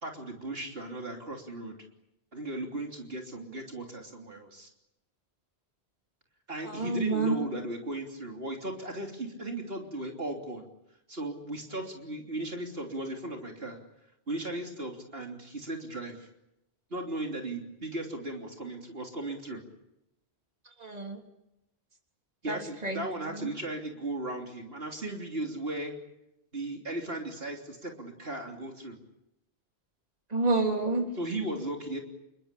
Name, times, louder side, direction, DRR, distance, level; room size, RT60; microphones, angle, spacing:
voice 1, 0.0-1.8 2.3-4.7 6.5-10.7 11.1-13.8 14.3-16.3 16.9-19.6 22.4-25.9 26.5-29.0 31.2-32.0, right 1 dB, 65° right, 2 dB, 3.5 m, -36 dB
voice 2, 6.6-7.5 20.8-21.2 22.5-23.0 23.3-23.5 30.3-31.1, right 3 dB, 40° right, 2 dB, 3.5 m, -29 dB
28.0 x 22.5 x 8.5 m, 0.87 s
omnidirectional pair, 1.1 m